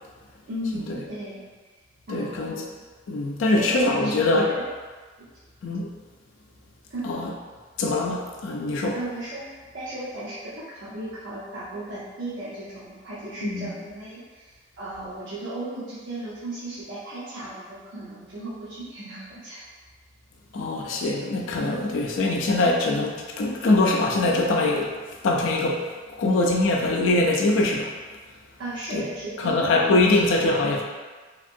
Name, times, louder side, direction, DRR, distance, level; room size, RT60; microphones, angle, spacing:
voice 1, 0.5-1.4 2.1-2.8 3.5-4.6 5.2-5.3 6.9-7.1 8.9-19.6 28.6-30.4, right 1 dB, 70° right, -10 dB, 0.7 m, -36 dB
voice 2, 2.1-2.6 3.1-4.5 5.6-5.9 7.0-7.3 7.8-9.0 13.4-13.7 20.5-24.9 25.2-27.9 28.9-29.0 29.4-30.8, left 2 dB, 85° left, -1 dB, 0.4 m, -23 dB
2.9 x 2.6 x 2.5 m, 1.4 s
head